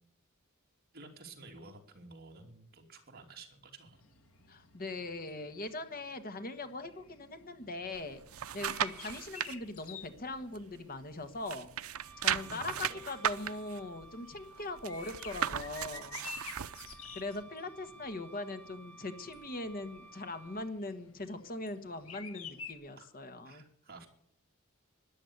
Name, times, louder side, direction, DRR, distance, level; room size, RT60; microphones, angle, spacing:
voice 1, 0.9-4.0 12.2-13.1 23.0-23.1 23.4-24.1, right 3 dB, 45° right, 2 dB, 3.1 m, -51 dB
sound 1, 3.9-22.7, left 5 dB, 75° left, 2.0 m, -52 dB
voice 2, 4.5-8.2 8.5-11.7 12.2-16.3 17.1-23.6, left 2 dB, 45° left, 9 dB, 1.4 m, -41 dB
sound 2, 7.9-9.5 10.0-11.1 11.4-17.0 17.4-17.5, right 9 dB, 85° right, 0.6 m, -36 dB
Wind instrument woodwind instrument, 11.9-20.7, right 3 dB, 10° left, 1.1 m, -55 dB
13.5 x 10.5 x 8.1 m, 0.69 s
head